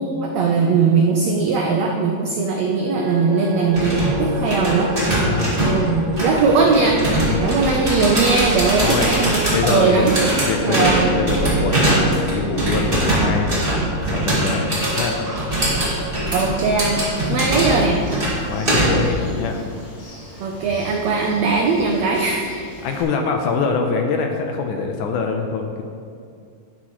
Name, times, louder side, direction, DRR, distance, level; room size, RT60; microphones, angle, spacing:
voice 1, 0.0-4.9 5.6-7.0 7.4-11.1 16.0-18.0 20.4-22.5, right 4 dB, 80° right, 0 dB, 1.5 m, -20 dB
sound 1, 2.6-18.9, right 2 dB, 55° right, 2.2 m, -31 dB
sound 2, 3.7-19.2, right 1 dB, 20° right, 1.7 m, -22 dB
voice 2, 5.3-5.9 7.3-7.6 8.8-9.2 9.5-10.1 10.4-13.5 14.1-14.7 14.9-15.2 17.3-17.4 18.5-19.6 22.8-25.8, left 4 dB, 75° left, 3 dB, 2.0 m, -24 dB
Bird, 17.0-23.0, left 1 dB, 50° left, 3.4 m, -40 dB
11.0 x 11.0 x 3.1 m, 2.3 s
omnidirectional pair, 4.0 m